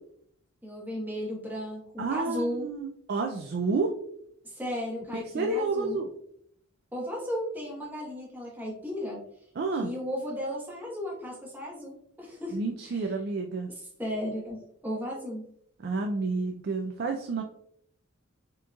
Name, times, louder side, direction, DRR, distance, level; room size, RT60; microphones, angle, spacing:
voice 1, 0.6-2.7 4.4-6.0 6.9-9.2 9.8-12.6 12.8-13.1 14.0-15.4, equal, 10° right, -5 dB, 1.1 m, -35 dB
voice 2, 2.0-3.9 5.1-6.1 9.6-9.9 12.5-13.7 15.8-17.4, right 3 dB, 45° right, 3 dB, 0.4 m, -30 dB
6.1 x 3.0 x 2.3 m, 0.69 s
head